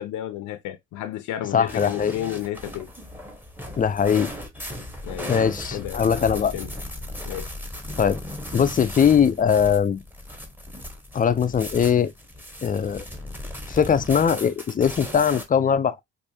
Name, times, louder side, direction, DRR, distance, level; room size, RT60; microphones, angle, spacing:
voice 1, 0.0-2.9 5.0-5.3 5.7-6.7 7.3-7.5, left 13 dB, 80° left, 0.6 m, -32 dB
voice 2, 1.5-2.1 3.8-4.3 5.3-6.5 8.0-8.2 8.5-10.0 11.1-12.1 12.6-13.1 13.7-16.0, left 7 dB, 30° left, 0.4 m, -21 dB
sound 1, 1.7-15.4, left 1 dB, 5° right, 1.1 m, -37 dB
4.6 x 2.6 x 2.6 m
cardioid pair, 90°, 30 cm